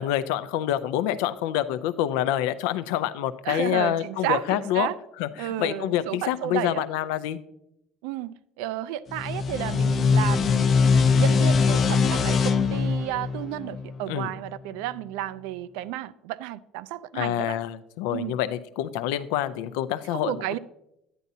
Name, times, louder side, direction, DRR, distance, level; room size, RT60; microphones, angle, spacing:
voice 1, 0.0-4.9 5.2-7.4 14.1-14.3 17.1-20.3, left 12 dB, 85° left, 0.5 m, -27 dB
voice 2, 3.5-5.0 5.4-6.8 8.0-17.6 18.1-18.4 20.1-20.6, right 13 dB, 85° right, 0.3 m, -32 dB
sound 1, 9.1-14.4, left 5 dB, 30° left, 0.5 m, -22 dB
10.0 x 9.2 x 2.7 m
cardioid pair, 165°, 0 cm